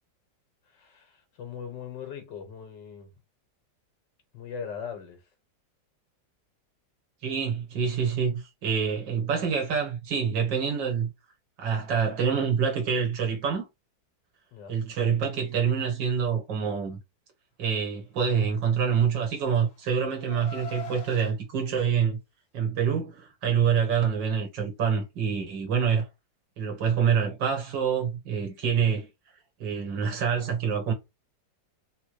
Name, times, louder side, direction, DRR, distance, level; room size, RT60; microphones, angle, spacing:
voice 1, 0.7-3.1 4.3-5.2 14.5-14.8, left 7 dB, 70° left, 1.8 m, -40 dB
voice 2, 7.2-11.1 11.6-13.7 14.7-17.0 17.6-22.2 22.5-26.1 26.6-29.1 29.6-30.9, right 7 dB, 80° right, 1.9 m, -26 dB
Car, 18.8-21.3, left 3 dB, 25° left, 1.2 m, -44 dB
4.1 x 2.2 x 3.1 m
omnidirectional pair, 2.0 m